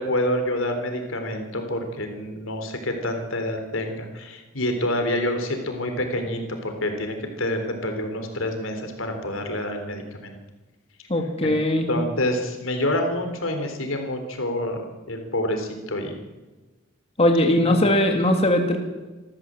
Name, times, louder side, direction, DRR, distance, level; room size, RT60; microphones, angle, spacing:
voice 1, 0.0-10.4 11.4-11.5 11.9-14.8 15.1-16.1 17.6-17.7, left 1 dB, 85° left, 5 dB, 3.8 m, -27 dB
voice 2, 11.1-11.9 17.2-18.8, left 1 dB, 30° left, 3 dB, 2.4 m, -20 dB
26.5 x 14.0 x 7.7 m, 1.2 s
head